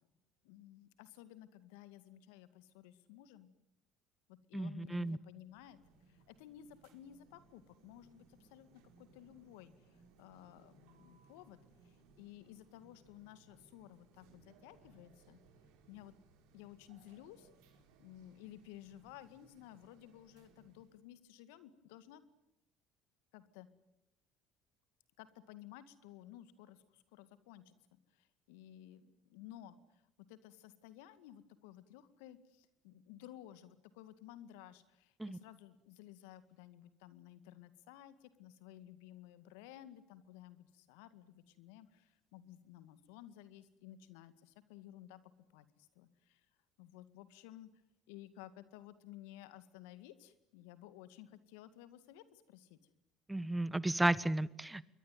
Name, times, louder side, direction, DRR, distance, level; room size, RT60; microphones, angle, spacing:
voice 1, 0.4-3.5 4.3-5.8 6.1-11.6 11.8-15.4 15.9-16.1 16.5-17.5 18.0-22.2 23.3-23.7 25.2-30.0 30.3-45.2 45.5-46.5 46.8-47.7 48.1-52.8, left 12 dB, 75° left, 13 dB, 2.0 m, -55 dB
voice 2, 4.5-5.2 35.2-35.4 53.3-54.9, right 1 dB, 10° right, 19 dB, 1.2 m, -33 dB
sound 1, 5.4-21.0, right 4 dB, 70° right, 4.6 m, -66 dB
27.5 x 22.5 x 9.3 m, 0.85 s
hypercardioid pair, 65°, 0 cm